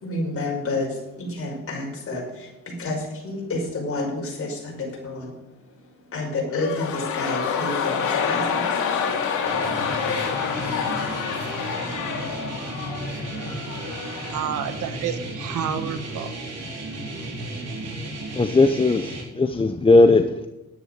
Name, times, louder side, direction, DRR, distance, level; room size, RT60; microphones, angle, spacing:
voice 1, 0.0-5.3 6.1-8.9 11.0-11.1, left 2 dB, 50° left, 0 dB, 5.5 m, -29 dB
sound 1, 6.5-14.6 14.9-15.0, left 6 dB, 80° left, 2.7 m, -27 dB
sound 2, 9.4-19.2, right 1 dB, 60° right, 4.4 m, -34 dB
voice 2, 14.3-16.3, right 9 dB, 80° right, 10 dB, 1.3 m, -29 dB
voice 3, 18.4-20.5, left 3 dB, 20° left, 8 dB, 0.7 m, -18 dB
11.0 x 9.8 x 6.7 m, 1.0 s
cardioid pair, 90°, 30 cm